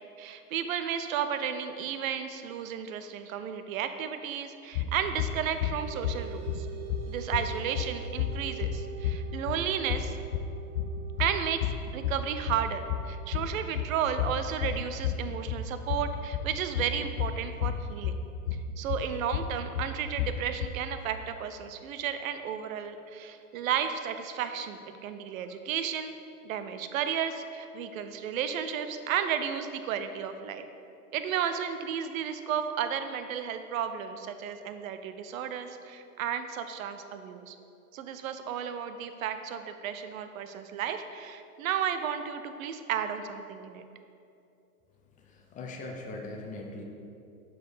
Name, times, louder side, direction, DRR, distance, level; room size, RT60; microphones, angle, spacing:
voice 1, 0.2-6.7 7.1-10.2 11.2-18.2 18.8-26.1 26.4-30.6 31.1-37.6 37.9-43.8, right 8 dB, 60° right, 9 dB, 0.7 m, -33 dB
sound 1, 4.7-20.7, left 7 dB, 55° left, 0.5 m, -33 dB
sound 2, 5.3-16.2, right 12 dB, 25° right, 1.0 m, -47 dB
voice 2, 45.2-46.8, left 2 dB, 15° left, 1 dB, 0.7 m, -40 dB
7.5 x 4.7 x 4.9 m, 2.7 s
hypercardioid pair, 110°, 46 cm